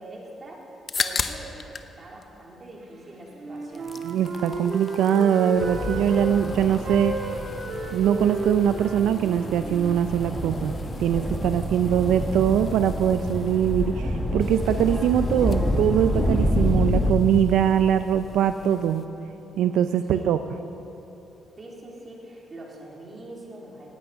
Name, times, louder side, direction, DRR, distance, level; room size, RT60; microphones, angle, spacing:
voice 1, 0.0-4.0 20.1-20.3 21.6-23.9, right 1 dB, 30° right, -2 dB, 3.1 m, -43 dB
sound 1, 0.6-1.9 2.2-3.2 3.5-19.1, left 5 dB, 40° left, 0.8 m, -39 dB
Wind instrument woodwind instrument, 3.3-6.3 6.8-10.6, right 1 dB, 55° right, 2.2 m, -33 dB
voice 2, 4.0-7.2 7.9-10.7 11.0-19.1 19.6-20.4, right 9 dB, 85° right, 10 dB, 0.4 m, -22 dB
sound 2, 5.5-17.1, left 1 dB, 5° left, 1.5 m, -28 dB
17.5 x 9.4 x 5.5 m, 3.0 s
cardioid pair, 90°, 0 cm